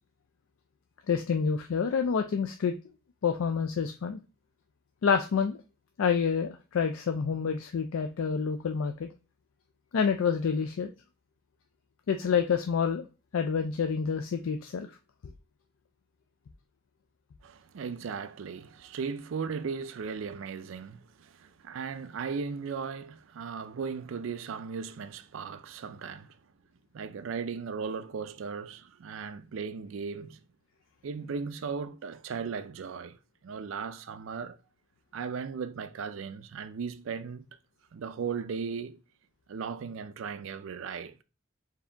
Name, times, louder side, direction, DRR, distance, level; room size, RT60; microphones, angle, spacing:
voice 1, 1.1-2.7 3.2-4.2 5.0-5.6 6.0-9.1 9.9-10.9 12.1-13.1 13.3-14.9, left 6 dB, 90° left, 0.4 m, -28 dB
voice 2, 17.4-26.4 26.9-30.4 31.0-33.2 33.4-34.6 35.1-37.5 37.9-39.0 39.5-41.2, right 5 dB, 75° right, 0.4 m, -37 dB
4.7 x 2.8 x 3.3 m
head